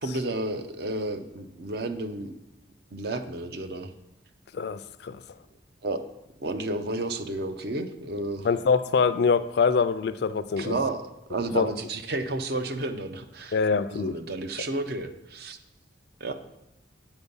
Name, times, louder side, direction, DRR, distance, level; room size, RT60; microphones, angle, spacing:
voice 1, 0.0-2.3 2.9-3.9 5.8-6.0 6.4-8.5 10.6-11.0 11.3-13.6 13.9-15.6 16.2-16.3, right 2 dB, 55° right, 7 dB, 0.6 m, -31 dB
voice 2, 4.5-5.2 8.4-10.8 11.5-11.7 13.5-14.2 16.3-16.4, left 5 dB, 60° left, 13 dB, 0.3 m, -24 dB
8.1 x 4.4 x 5.4 m, 0.89 s
head